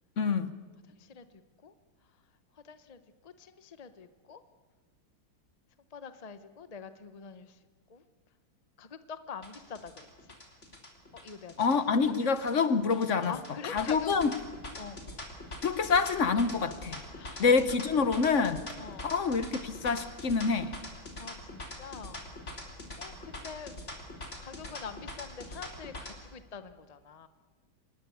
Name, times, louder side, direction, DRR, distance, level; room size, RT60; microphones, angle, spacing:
voice 1, 0.2-0.5 11.6-13.3 13.7-14.3 15.6-17.0 17.4-18.6 19.0-20.7, left 5 dB, 50° left, 12 dB, 1.0 m, -26 dB
voice 2, 2.6-4.4 5.9-7.5 7.9-8.0 8.8-10.1 11.1-12.1 13.3-14.1 14.8-15.0 17.1-17.5 18.8-19.1 21.0-22.3 23.0-23.7 24.4-27.3, left 6 dB, 65° left, 11 dB, 0.3 m, -45 dB
sound 1, 9.4-26.1, left 1 dB, 30° left, 3.6 m, -43 dB
26.0 x 20.5 x 8.5 m, 1.4 s
omnidirectional pair, 2.3 m